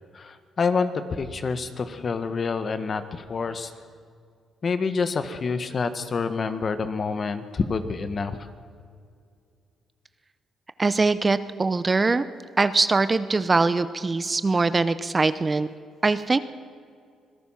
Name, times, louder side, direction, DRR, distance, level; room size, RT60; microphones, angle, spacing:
voice 1, 0.1-3.7 4.6-8.4, left 4 dB, 40° left, 10 dB, 1.6 m, -27 dB
voice 2, 10.8-12.2 12.6-15.7 16.0-16.4, right 3 dB, 25° right, 13 dB, 0.8 m, -22 dB
25.0 x 17.5 x 5.9 m, 2.3 s
cardioid pair, 90°, 0 cm